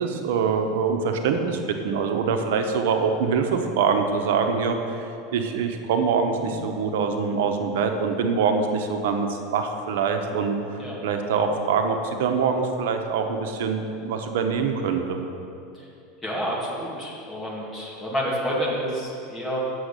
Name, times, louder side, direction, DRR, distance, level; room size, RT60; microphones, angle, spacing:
voice 1, 0.0-15.2, right 5 dB, 80° right, 5 dB, 1.0 m, -24 dB
Guitar, 6.4-11.5, left 2 dB, 30° left, 1.3 m, -46 dB
voice 2, 16.2-19.6, equal, 5° left, -5 dB, 1.9 m, -29 dB
7.9 x 6.4 x 6.6 m, 2.6 s
supercardioid pair, 155°, 0 cm